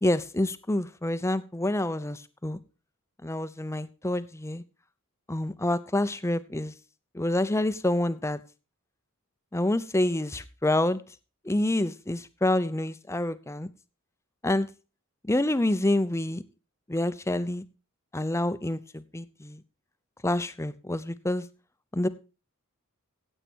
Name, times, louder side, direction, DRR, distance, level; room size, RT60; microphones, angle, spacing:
voice 1, 0.0-2.6 3.2-4.6 5.3-6.7 7.1-8.4 9.5-11.0 11.4-13.7 14.4-14.7 15.3-16.4 16.9-17.6 18.1-19.6 20.2-21.5 21.9-22.1, left 1 dB, 15° left, 14 dB, 0.6 m, -27 dB
15.5 x 8.3 x 4.4 m, 0.33 s
head